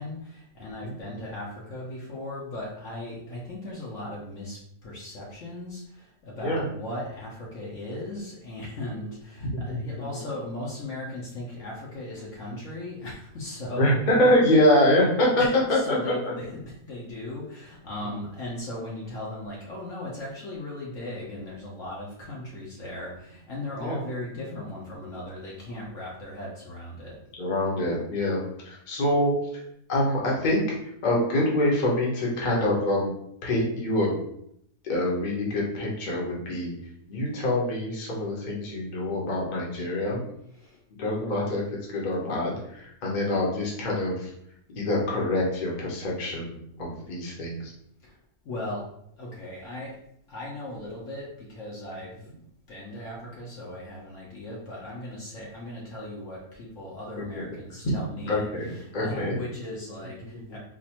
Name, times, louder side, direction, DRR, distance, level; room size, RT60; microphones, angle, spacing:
voice 1, 0.0-14.3 15.4-15.5 15.8-27.2 40.6-40.8 48.0-48.2 48.4-48.9 49.2-50.0 50.3-52.4 52.7-58.4 58.7-60.6, left 1 dB, 55° left, -4 dB, 1.1 m, -37 dB
voice 2, 9.4-9.8 13.8-15.4 15.7-16.3 18.1-18.3 23.7-24.0 27.4-29.3 29.9-30.8 31.0-33.1 33.4-34.1 34.8-36.7 37.1-40.2 41.0-44.3 44.7-47.7 57.2-57.4 57.8-57.9 58.3-59.4, left 1 dB, 35° left, -4 dB, 0.9 m, -25 dB
4.1 x 2.5 x 2.9 m, 0.72 s
omnidirectional pair, 1.7 m